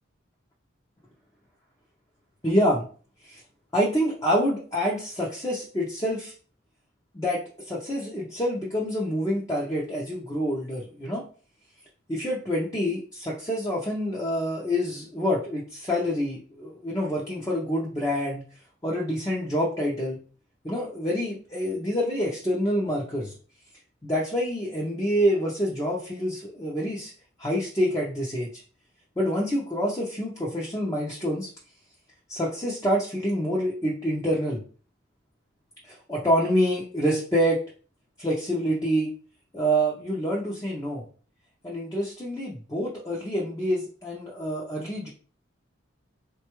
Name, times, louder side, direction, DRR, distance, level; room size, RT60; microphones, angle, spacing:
voice 1, 2.4-2.9 3.2-3.4 3.7-6.3 7.1-11.2 12.1-18.4 18.8-20.2 20.6-23.3 24.0-27.1 27.4-28.6 29.2-31.5 32.3-34.6 35.8-37.6 38.2-39.1 39.5-41.0 41.6-45.1, equal, 15° left, -4 dB, 0.5 m, -27 dB
3.6 x 2.2 x 2.9 m, 0.40 s
head